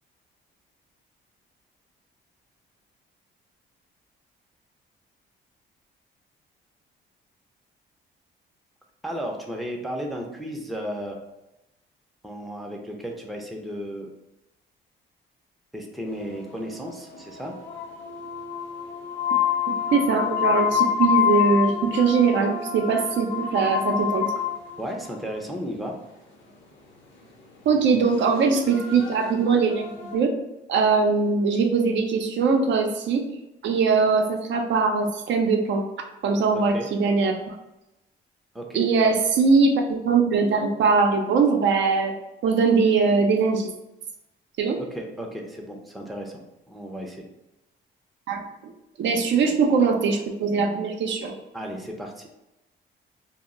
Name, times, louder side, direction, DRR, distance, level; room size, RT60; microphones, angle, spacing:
voice 1, 9.0-11.2 12.2-14.1 15.7-17.6 24.8-26.0 36.5-36.9 38.5-39.1 44.8-46.4 46.7-47.3 51.5-52.3, equal, ahead, 0 dB, 0.4 m, -34 dB
sound 1, 16.1-25.0 28.2-30.1, left 9 dB, 70° left, 0.7 m, -27 dB
voice 2, 19.7-24.3 27.7-30.3 30.7-33.2 33.6-35.8 36.2-37.5 38.7-42.1 42.4-43.7 44.6-44.8 48.3-48.7 49.0-51.3, right 5 dB, 65° right, 3 dB, 0.4 m, -21 dB
2.1 x 2.0 x 3.6 m, 0.93 s
cardioid pair, 90°, 20 cm